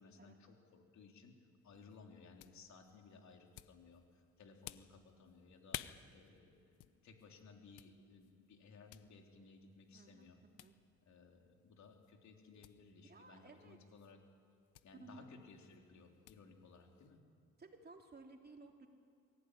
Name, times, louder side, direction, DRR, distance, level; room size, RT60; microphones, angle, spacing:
voice 1, 0.0-10.4 11.1-14.2 14.8-17.2, left 4 dB, 65° left, 2 dB, 3.6 m, -60 dB
sound 1, 1.6-17.2, left 13 dB, 85° left, 0.8 m, -57 dB
voice 2, 9.9-10.3 10.6-10.8 13.1-13.8 15.0-15.3 17.6-18.9, right 3 dB, 30° right, 3 dB, 2.9 m, -57 dB
22.5 x 15.5 x 9.8 m, 2.5 s
cardioid pair, 90°, 30 cm